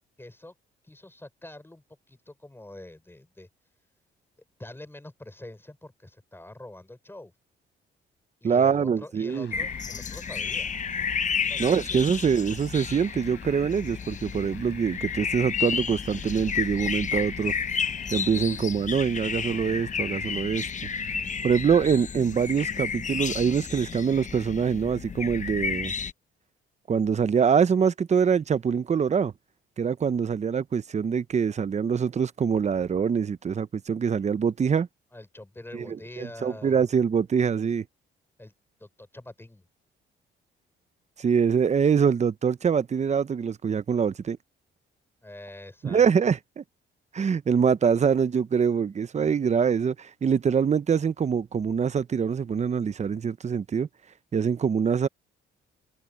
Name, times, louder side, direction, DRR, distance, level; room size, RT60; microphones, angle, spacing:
voice 1, 0.2-0.5 0.8-3.5 4.6-7.3 8.4-10.7 11.4-12.1 35.1-36.9 38.4-38.5 38.8-39.7 45.2-46.1, left 1 dB, 10° left, 5.4 m, -45 dB
voice 2, 8.4-9.5 11.6-17.5 18.1-20.7 21.4-25.9 26.9-29.3 29.8-34.9 35.7-37.8 41.2-44.4 45.8-46.6 47.1-53.9 54.3-55.1, right 6 dB, 35° right, 0.8 m, -24 dB
sound 1, 9.3-23.0, left 10 dB, 65° left, 6.2 m, -52 dB
sound 2, 9.5-26.1, left 6 dB, 40° left, 1.0 m, -32 dB
cardioid pair, 90°, 20 cm